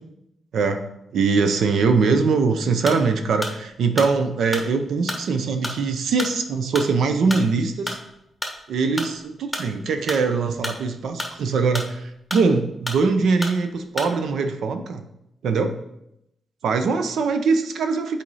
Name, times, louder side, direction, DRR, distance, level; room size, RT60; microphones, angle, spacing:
voice 1, 1.1-8.0 8.7-15.0 15.4-15.7 16.6-18.2, right 4 dB, 80° right, 7 dB, 0.6 m, -22 dB
sound 1, 2.8-3.1 3.4-8.6 9.0-10.3 10.5-12.1 12.3-13.1 13.4-13.6 14.0-14.2, left 1 dB, 5° left, 1.3 m, -31 dB
7.7 x 4.3 x 4.1 m, 0.82 s
cardioid pair, 105°, 0 cm